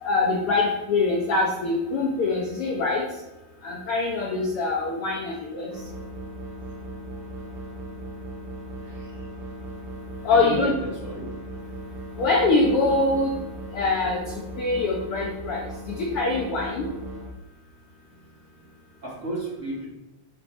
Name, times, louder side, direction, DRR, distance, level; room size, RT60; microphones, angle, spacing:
voice 1, 0.0-3.0 3.6-5.7 10.2-10.7 12.2-13.3 13.7-14.2 14.6-16.9, left 3 dB, 85° left, -2 dB, 1.2 m, -24 dB
sound 1, 5.7-17.3, equal, 80° right, 2.9 m, -38 dB
voice 2, 8.8-9.3 10.3-11.3 17.9-19.9, right 2 dB, 25° right, -7 dB, 2.1 m, -34 dB
8.0 x 5.9 x 3.2 m, 1.0 s
omnidirectional pair, 3.8 m